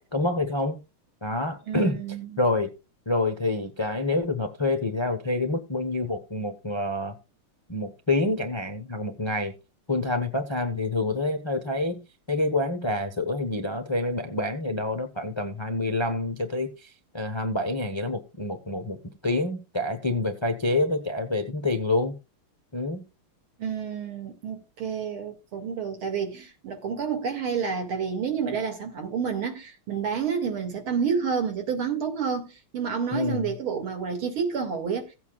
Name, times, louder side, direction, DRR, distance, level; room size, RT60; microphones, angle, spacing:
voice 1, 0.1-0.8 1.2-2.0 2.4-2.7 3.1-7.2 7.7-9.5 9.9-22.2 22.7-23.0 33.1-33.5, left 2 dB, 45° left, 0.3 m, -27 dB
voice 2, 1.7-2.4 23.6-35.1, right 6 dB, 70° right, 2.9 m, -29 dB
17.0 x 8.2 x 2.3 m
omnidirectional pair, 2.4 m